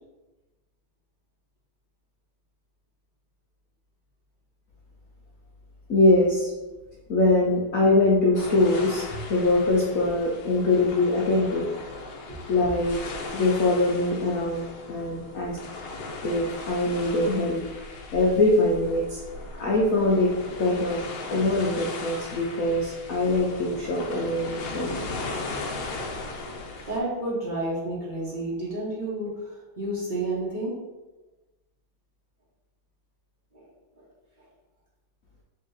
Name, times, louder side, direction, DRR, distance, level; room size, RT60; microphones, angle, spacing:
voice 1, 5.9-6.5 7.1-11.7 12.5-13.0 13.3-15.6 16.2-19.2 19.6-20.3 20.6-21.0 21.3-25.0, left 2 dB, 90° left, -4 dB, 0.7 m, -23 dB
sound 1, 8.3-27.0, left 3 dB, 70° left, 1.2 m, -38 dB
voice 2, 26.9-29.5 29.8-30.7 33.5-33.6, right 1 dB, 35° right, -6 dB, 0.7 m, -30 dB
3.7 x 3.3 x 3.9 m, 1.1 s
omnidirectional pair, 2.3 m